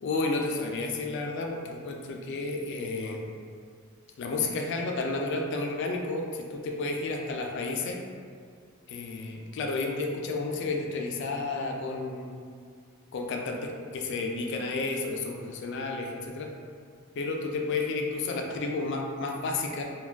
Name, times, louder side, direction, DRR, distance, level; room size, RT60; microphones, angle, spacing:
voice 1, 0.0-3.2 4.2-8.0 8.9-12.3 13.1-16.5 17.2-19.8, left 3 dB, 55° left, 1 dB, 0.3 m, -31 dB
2.3 x 2.2 x 3.3 m, 2.1 s
head